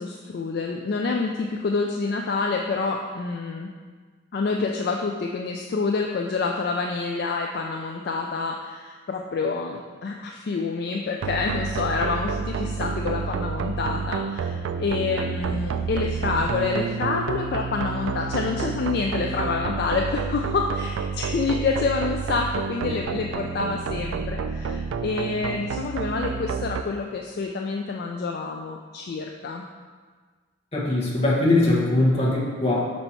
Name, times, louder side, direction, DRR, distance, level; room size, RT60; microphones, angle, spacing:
voice 1, 0.0-3.7 4.3-29.6, left 4 dB, 50° left, 1 dB, 0.3 m, -27 dB
sound 1, 11.2-26.8, right 5 dB, 80° right, 0.3 m, -29 dB
voice 2, 30.7-32.9, left 2 dB, 30° left, -4 dB, 1.1 m, -21 dB
5.4 x 4.1 x 4.4 m, 1.5 s
head